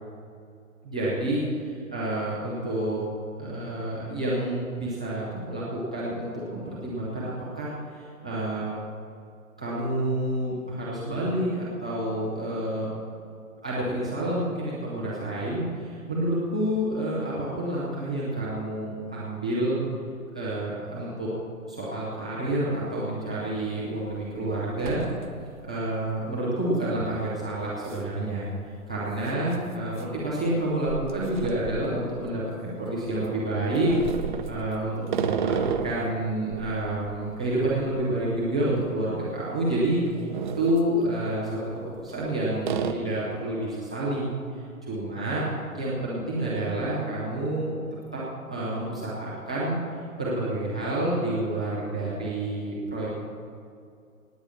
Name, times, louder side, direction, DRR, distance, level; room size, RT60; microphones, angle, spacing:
voice 1, 0.8-1.4 1.7-3.0 3.4-8.7 9.6-12.9 13.6-19.8 20.3-21.3 21.7-25.0 25.6-28.5 28.9-33.9 34.4-35.5 35.8-40.0 40.6-44.3 44.8-45.5 45.7-47.7 48.1-48.2 48.5-49.8 50.2-53.1, right 1 dB, 5° right, -9 dB, 0.4 m, -29 dB
sound 1, 23.2-23.3 23.8-24.3 24.5-25.6 25.9-26.0 27.0-27.2 27.9-28.1 28.3-28.4 29.4-32.5 33.0-36.1 36.5-38.9 39.1-39.3 39.8-40.9 41.7-42.3 42.6-42.9, right 7 dB, 35° right, 0.7 m, -33 dB
18.0 x 8.3 x 6.1 m, 2.4 s
hypercardioid pair, 155°, 43 cm